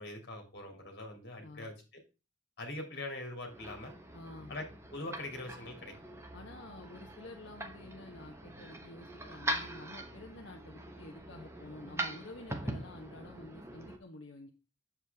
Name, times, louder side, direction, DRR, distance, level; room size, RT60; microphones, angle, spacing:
voice 1, 0.0-2.0 2.6-3.9 4.5-4.6 4.9-5.9, left 2 dB, 60° left, 2 dB, 2.7 m, -42 dB
sound 1, 3.4-14.0, right 1 dB, 15° right, 1.1 m, -42 dB
voice 2, 4.1-4.6 6.3-14.5, left 2 dB, 75° left, 2 dB, 1.1 m, -50 dB
8.1 x 7.3 x 3.5 m, 0.30 s
head